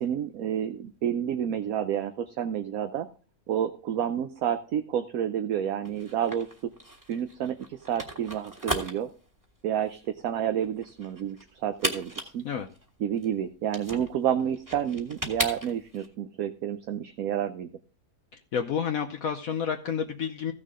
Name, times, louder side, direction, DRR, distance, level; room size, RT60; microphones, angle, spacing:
voice 1, 0.0-3.1 3.5-6.7 7.1-9.1 9.6-11.4 11.6-12.5 13.0-17.7, right 9 dB, 65° right, 7 dB, 1.1 m, -29 dB
sound 1, 5.8-16.1, right 1 dB, 10° right, 1.7 m, -36 dB
voice 2, 18.3-20.5, left 7 dB, 65° left, 5 dB, 1.2 m, -30 dB
15.0 x 6.5 x 3.7 m, 0.37 s
omnidirectional pair, 1.7 m